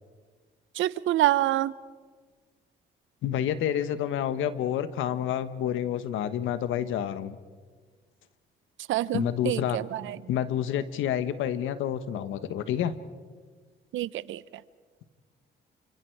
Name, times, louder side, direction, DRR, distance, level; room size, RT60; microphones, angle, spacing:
voice 1, 0.7-1.7 8.9-10.2 13.9-14.4, right 14 dB, 80° right, 18 dB, 0.8 m, -27 dB
voice 2, 3.2-7.4 9.1-9.8 10.3-12.9, left 10 dB, 90° left, 12 dB, 1.3 m, -29 dB
28.5 x 25.5 x 4.7 m, 1.5 s
cardioid pair, 90°, 20 cm